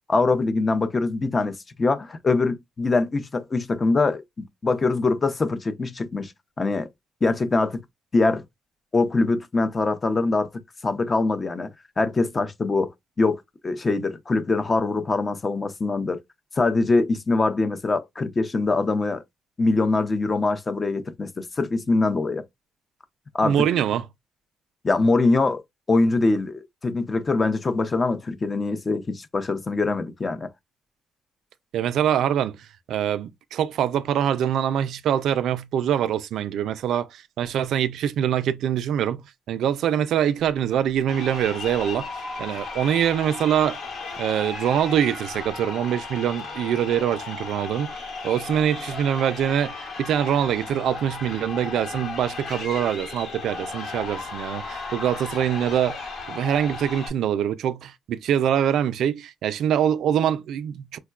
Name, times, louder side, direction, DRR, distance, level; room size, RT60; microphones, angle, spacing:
voice 1, 0.1-6.3 6.6-6.9 7.2-7.8 8.1-8.4 8.9-10.5 10.8-11.7 12.0-12.9 13.2-16.2 16.6-19.2 19.6-22.4 23.3-23.6 24.8-25.6 25.9-30.5, left 3 dB, 30° left, 0.6 m, -23 dB
voice 2, 23.4-24.0 31.7-32.6 32.9-39.2 39.5-42.1 42.4-43.8 44.2-61.0, right 9 dB, 75° right, 0.3 m, -24 dB
Crowd, 41.0-57.1, left 4 dB, 75° left, 1.4 m, -35 dB
4.4 x 2.1 x 2.3 m
cardioid pair, 90°, 0 cm